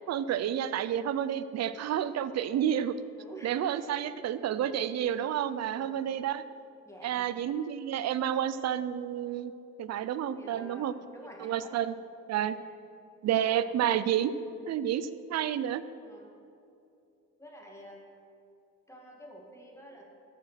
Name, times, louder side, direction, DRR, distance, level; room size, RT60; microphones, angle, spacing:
voice 1, 0.1-3.0 3.4-6.4 7.0-9.5 9.8-10.9 11.4-11.9 12.3-12.6 13.2-14.3 14.7-15.8, right 10 dB, 60° right, 14 dB, 0.5 m, -30 dB
voice 2, 3.2-3.9 5.5-6.0 6.8-7.3 10.4-12.0 12.6-12.8 13.4-13.7 16.0-16.3 17.4-18.0 18.9-20.1, right 1 dB, 10° left, -1 dB, 2.0 m, -49 dB
13.5 x 4.9 x 5.8 m, 2.6 s
cardioid pair, 90°, 30 cm